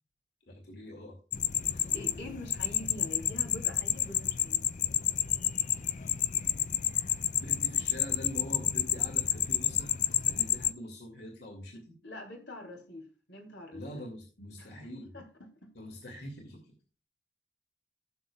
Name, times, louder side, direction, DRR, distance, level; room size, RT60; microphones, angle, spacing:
voice 1, 0.5-1.1 1.7-1.8 7.3-12.0 13.7-15.1 15.7-16.6, left 1 dB, 60° left, 2.5 m, -44 dB
sound 1, 1.3-10.7, left 11 dB, 45° left, 0.5 m, -30 dB
voice 2, 1.9-4.6 12.0-13.8 14.6-14.7 15.1-15.2 15.6-15.7, left 2 dB, 75° left, 3.1 m, -44 dB
15.5 x 7.1 x 2.4 m
head